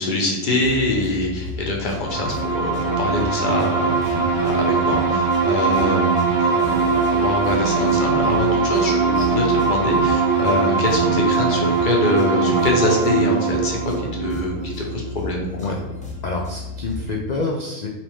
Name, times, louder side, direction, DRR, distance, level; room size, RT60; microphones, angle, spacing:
voice 1, 0.0-15.6, left 2 dB, 40° left, 0 dB, 0.9 m, -24 dB
sound 1, 0.6-17.2, equal, 5° left, 0.8 m, -34 dB
sound 2, 2.0-15.4, right 4 dB, 50° right, 1.5 m, -21 dB
voice 2, 16.2-17.9, left 3 dB, 75° left, 0 dB, 0.4 m, -27 dB
5.8 x 2.6 x 3.5 m, 0.96 s
omnidirectional pair, 1.4 m